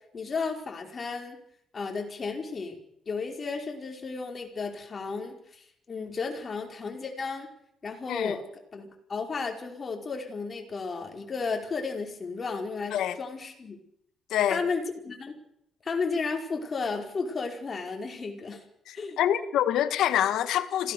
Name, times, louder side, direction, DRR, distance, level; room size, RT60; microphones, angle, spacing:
voice 1, 0.1-1.4 1.7-2.8 3.0-7.5 7.8-8.4 8.7-13.8 14.5-15.4 15.8-18.6 18.9-19.2, left 4 dB, 40° left, 5.2 m, -33 dB
voice 2, 18.9-20.9, left 11 dB, 80° left, 1.6 m, -26 dB
26.0 x 17.5 x 7.1 m
cardioid pair, 90°, 0 cm